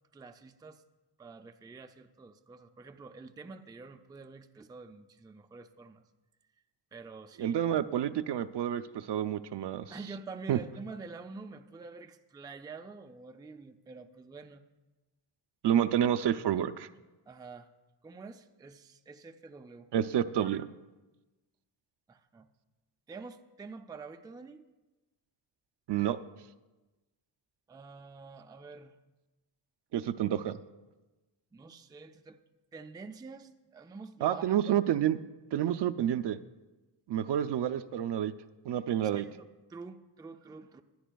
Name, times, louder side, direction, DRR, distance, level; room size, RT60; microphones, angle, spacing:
voice 1, 0.1-0.8 1.2-6.0 6.9-7.6 9.9-14.6 17.3-17.7 18.0-19.9 22.1-22.5 23.1-24.6 27.7-29.0 31.5-32.4 32.7-34.8 39.0-40.8, right 4 dB, 10° right, 7 dB, 0.3 m, -47 dB
voice 2, 7.4-9.9 10.5-10.6 15.6-16.9 19.9-20.7 25.9-26.2 29.9-30.6 34.2-35.2 35.5-36.4 37.1-38.3 38.6-39.2, right 10 dB, 70° right, 12 dB, 0.5 m, -29 dB
21.5 x 10.0 x 2.3 m, 1.1 s
wide cardioid pair, 130°, 44 cm